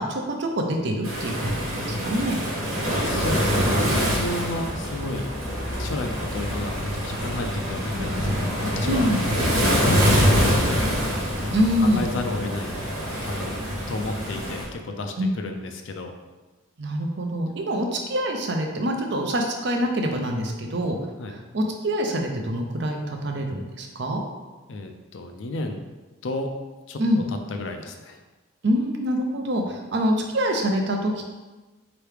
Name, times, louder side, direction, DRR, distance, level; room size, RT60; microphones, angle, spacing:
voice 1, 0.0-2.4 8.8-9.2 11.5-12.0 15.2-15.3 16.8-21.0 21.5-24.2 27.0-27.2 28.6-31.2, equal, 55° right, 3 dB, 0.5 m, -25 dB
Waves surf, 1.0-14.6, equal, 90° right, 1.2 m, -25 dB
voice 2, 3.0-5.3 5.8-10.9 11.4-12.8 13.2-13.6 13.9-16.1 21.2-21.4 24.7-25.8 26.2-26.5 26.9-27.0 27.3-28.2, left 2 dB, 65° left, 4 dB, 0.5 m, -32 dB
sound 1, 4.2-14.5, equal, 20° left, 0.6 m, -37 dB
4.6 x 3.0 x 3.4 m, 1.2 s
head